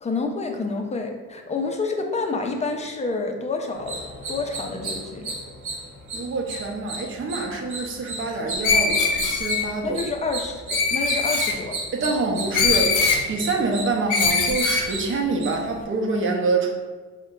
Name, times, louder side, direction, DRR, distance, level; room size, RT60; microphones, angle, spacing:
voice 1, 0.0-4.0 4.3-5.3 9.8-11.8, left 3 dB, 25° left, 3 dB, 0.4 m, -28 dB
sound 1, 3.7-15.8, right 2 dB, 75° right, 0.9 m, -34 dB
voice 2, 6.1-10.0 11.9-13.0 13.3-16.7, right 3 dB, 45° right, 1 dB, 0.7 m, -26 dB
Screech, 8.6-9.6 10.7-11.5 12.5-13.2 14.1-14.9, left 4 dB, 90° left, 0.6 m, -21 dB
3.6 x 2.2 x 3.6 m, 1.4 s
cardioid pair, 90°, 30 cm